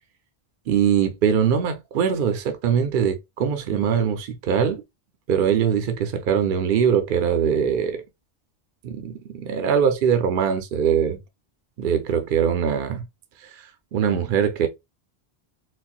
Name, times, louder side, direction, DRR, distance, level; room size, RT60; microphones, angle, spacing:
voice 1, 0.7-4.8 5.3-8.0 8.8-11.2 11.8-13.0 13.4-13.6 13.9-14.7, right 7 dB, 60° right, 0.7 m, -22 dB
4.1 x 2.1 x 2.4 m
omnidirectional pair, 1.1 m